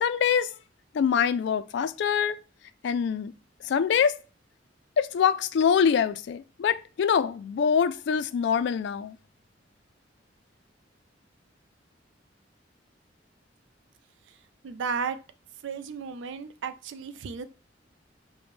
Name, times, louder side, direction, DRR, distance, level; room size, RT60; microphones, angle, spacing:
voice 1, 0.0-0.5 0.9-2.4 2.8-3.3 3.6-4.1 5.0-9.2, left 7 dB, 70° left, 0.3 m, -24 dB
voice 2, 14.6-15.2 15.6-17.4, right 5 dB, 75° right, 0.3 m, -33 dB
5.0 x 2.1 x 3.1 m
head